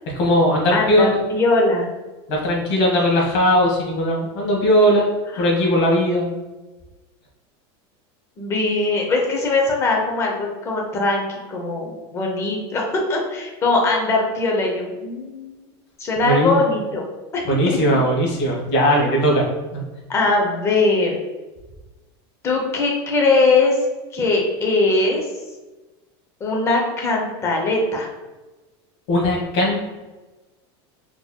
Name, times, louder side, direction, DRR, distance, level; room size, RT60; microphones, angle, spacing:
voice 1, 0.1-1.2 2.3-6.3 16.2-16.6 17.4-19.4 19.7-19.8 29.1-29.8, equal, 50° left, -2 dB, 1.2 m, -18 dB
voice 2, 0.7-1.9 5.3-5.4 8.4-15.5 16.0-17.0 17.3-18.0 20.1-21.2 22.4-23.7 24.1-25.2 26.4-28.1, left 3 dB, 20° left, 0 dB, 0.7 m, -21 dB
4.5 x 2.9 x 2.2 m, 1.2 s
supercardioid pair, 160°, 14 cm